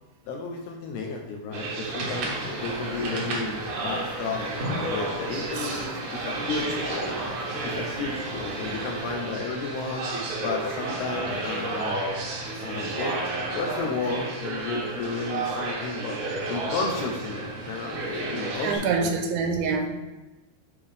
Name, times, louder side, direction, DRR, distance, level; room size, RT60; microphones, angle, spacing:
voice 1, 0.2-7.2 7.6-10.1 10.4-12.0 12.6-13.2 13.5-16.2 16.5-19.1, left 4 dB, 75° left, 1 dB, 2.5 m, -33 dB
sound 1, 1.5-18.8, right 2 dB, 65° right, 1.9 m, -32 dB
sound 2, 2.0-9.4, equal, 55° left, 4.4 m, -40 dB
voice 2, 5.5-5.9 6.5-6.7 7.9-8.0 12.4-12.5 18.0-18.1 18.6-19.9, right 4 dB, 80° right, 4 dB, 3.4 m, -27 dB
9.9 x 5.2 x 3.4 m, 1.1 s
omnidirectional pair, 5.3 m